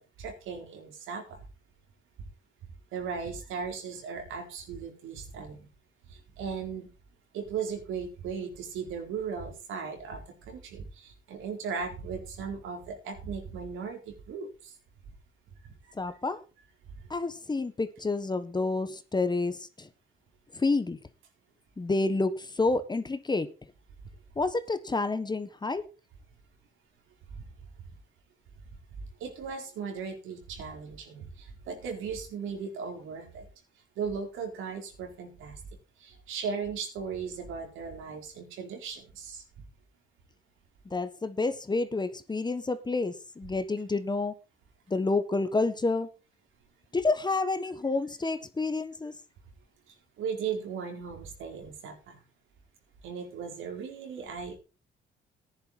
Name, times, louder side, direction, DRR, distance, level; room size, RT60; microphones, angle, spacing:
voice 1, 0.0-1.4 2.9-5.7 6.1-6.9 7.3-14.7 15.6-15.7 27.3-27.5 29.0-33.5 34.0-35.6 36.0-39.4 49.9-52.2 53.0-54.6, right 6 dB, 90° right, 3 dB, 4.3 m, -37 dB
voice 2, 15.9-16.4 17.1-19.9 20.5-21.0 21.8-23.5 24.3-25.8 40.8-44.3 44.9-46.1 46.9-49.1, left 3 dB, 20° left, 12 dB, 1.3 m, -29 dB
14.5 x 10.5 x 4.1 m, 0.32 s
cardioid pair, 90°, 20 cm